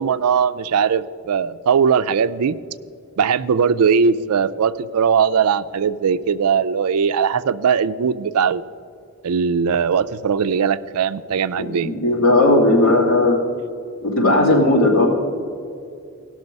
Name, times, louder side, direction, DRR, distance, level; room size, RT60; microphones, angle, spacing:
voice 1, 0.0-2.6 3.2-8.6 9.2-11.9, right 6 dB, 85° right, 14 dB, 0.4 m, -19 dB
voice 2, 11.6-13.4 14.0-15.1, left 2 dB, 70° left, -3 dB, 2.8 m, -16 dB
16.5 x 6.2 x 5.3 m, 2.4 s
head